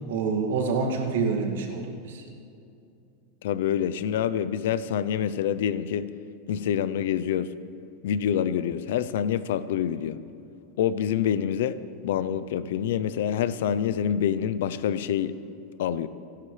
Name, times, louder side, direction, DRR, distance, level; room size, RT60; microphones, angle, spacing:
voice 1, 0.0-2.2, right 4 dB, 85° right, 1 dB, 2.2 m, -27 dB
voice 2, 3.4-6.1 6.5-7.5 8.0-10.2 10.8-11.8 12.0-15.3 15.8-16.1, left 9 dB, 70° left, 15 dB, 0.6 m, -26 dB
28.0 x 11.5 x 3.3 m, 2.6 s
supercardioid pair, 175°, 0 cm